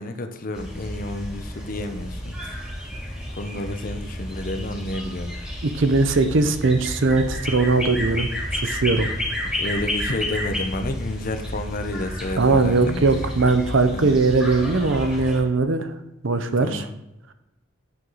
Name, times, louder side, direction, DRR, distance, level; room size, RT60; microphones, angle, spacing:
voice 1, 0.0-2.7 3.1-5.3 9.6-13.0 13.9-14.1 16.6-16.9, left 2 dB, 45° left, 7 dB, 0.6 m, -30 dB
sound 1, 0.5-15.4, left 1 dB, 5° right, 2.9 m, -31 dB
voice 2, 5.8-9.1 12.4-15.9 16.2-16.8, right 3 dB, 65° right, 9 dB, 0.7 m, -20 dB
9.3 x 4.6 x 3.9 m, 0.91 s
head